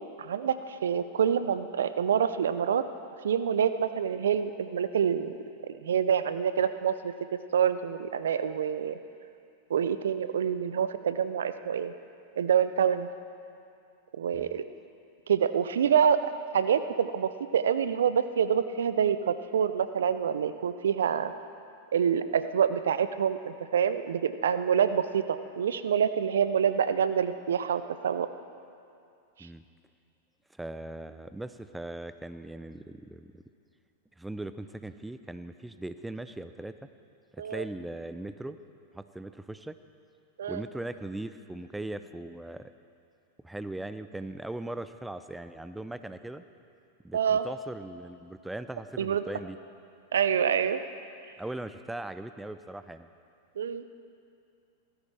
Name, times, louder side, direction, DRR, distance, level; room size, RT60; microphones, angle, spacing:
voice 1, 0.2-2.9 3.2-5.3 5.8-9.0 9.7-11.9 12.4-13.1 14.2-14.6 15.3-16.2 16.5-21.3 21.9-28.3 37.4-37.6 40.4-40.6 47.1-47.5 49.0-49.2 50.1-50.8 53.6-53.8, right 8 dB, 75° right, 12 dB, 0.6 m, -26 dB
voice 2, 30.5-33.4 34.2-36.9 37.3-38.6 38.9-39.8 40.5-42.7 43.4-46.4 47.0-49.6 51.4-53.1, right 2 dB, 5° right, 11 dB, 0.5 m, -39 dB
17.0 x 15.0 x 3.4 m, 2.4 s
hypercardioid pair, 95°, 0 cm